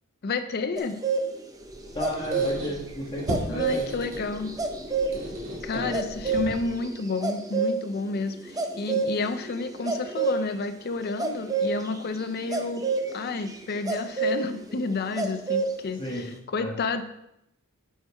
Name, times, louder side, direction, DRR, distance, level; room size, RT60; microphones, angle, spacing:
voice 1, 0.2-1.0 3.5-4.5 5.6-17.0, left 3 dB, 45° left, 9 dB, 0.5 m, -30 dB
sound 1, 0.8-10.4 11.2-15.7 16.0-16.2, right 4 dB, 15° right, 0.6 m, -29 dB
Squeak, 1.6-6.9, equal, 60° right, 1.9 m, -37 dB
voice 2, 1.9-3.9 5.7-5.9 6.5-6.6 16.0-16.2 16.6-16.7, equal, 20° left, -3 dB, 1.8 m, -33 dB
9.1 x 4.5 x 4.3 m, 0.81 s
head